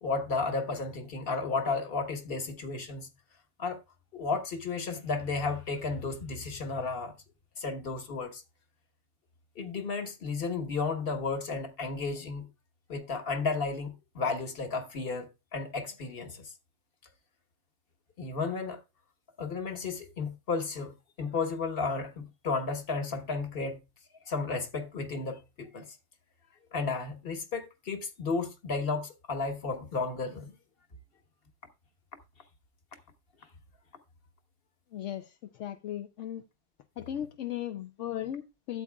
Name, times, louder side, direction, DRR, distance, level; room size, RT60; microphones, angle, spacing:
voice 1, 0.0-3.1 3.6-3.8 4.1-7.1 7.6-8.4 9.6-12.5 12.9-16.5 18.2-18.8 19.4-23.8 24.3-25.8 26.7-30.5, left 4 dB, 50° left, 1.4 m, -33 dB
voice 2, 34.9-36.4 37.0-38.8, left 11 dB, 75° left, 0.9 m, -37 dB
12.5 x 8.4 x 2.3 m
omnidirectional pair, 1.3 m